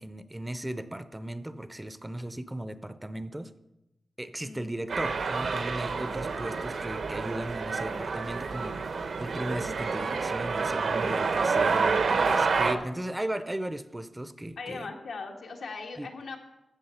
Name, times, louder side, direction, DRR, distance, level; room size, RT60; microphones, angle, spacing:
voice 1, 0.0-3.5 4.2-14.9 16.0-16.1, right 1 dB, 10° right, 12 dB, 0.5 m, -36 dB
voice 2, 4.4-4.8 14.6-16.4, left 4 dB, 90° left, 2 dB, 1.7 m, -39 dB
sound 1, 4.9-12.7, right 4 dB, 70° right, 0.9 m, -28 dB
15.5 x 6.2 x 5.7 m, 0.92 s
wide cardioid pair, 120°, 0 cm